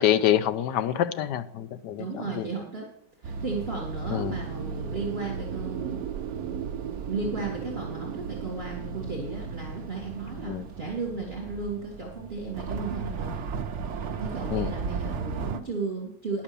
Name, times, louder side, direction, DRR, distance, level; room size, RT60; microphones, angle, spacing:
voice 1, 0.0-2.1 2.4-2.5 4.1-4.4 10.5-10.6 14.5-14.7, left 11 dB, 75° left, 11 dB, 1.3 m, -26 dB
voice 2, 2.0-2.9 3.2-6.0 7.1-13.4 14.1-16.4, right 4 dB, 35° right, -1 dB, 2.0 m, -34 dB
sound 1, 3.2-15.6, right 5 dB, 55° right, 0.8 m, -36 dB
sound 2, 3.8-9.7, right 9 dB, 75° right, 1.1 m, -38 dB
11.0 x 5.7 x 6.8 m, 0.69 s
omnidirectional pair, 1.9 m